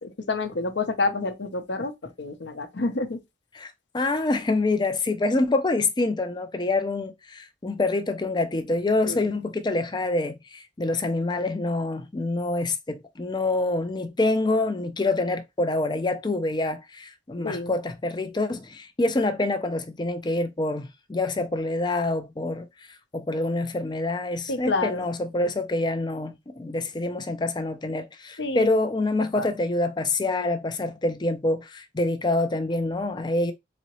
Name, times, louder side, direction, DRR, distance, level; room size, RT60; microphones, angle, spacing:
voice 1, 0.0-3.2 9.0-9.3 17.4-17.7 24.5-25.0 28.4-28.7 29.3-29.5, left 3 dB, 65° left, 0.7 m, -28 dB
voice 2, 3.5-22.7 23.1-33.5, left 2 dB, 25° left, 0.4 m, -26 dB
4.1 x 2.9 x 3.0 m
head